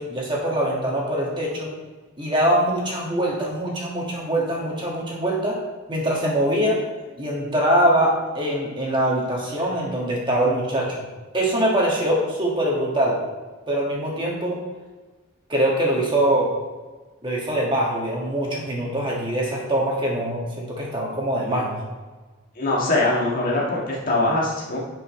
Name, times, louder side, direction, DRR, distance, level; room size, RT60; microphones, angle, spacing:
voice 1, 0.0-1.7 2.2-5.6 5.9-6.8 7.2-10.9 11.3-13.2 13.7-14.6 15.5-16.5 17.2-21.8, right 1 dB, 20° right, -3 dB, 1.7 m, -23 dB
voice 2, 22.6-24.8, left 2 dB, 40° left, -4 dB, 1.6 m, -22 dB
9.9 x 5.3 x 3.2 m, 1.3 s
head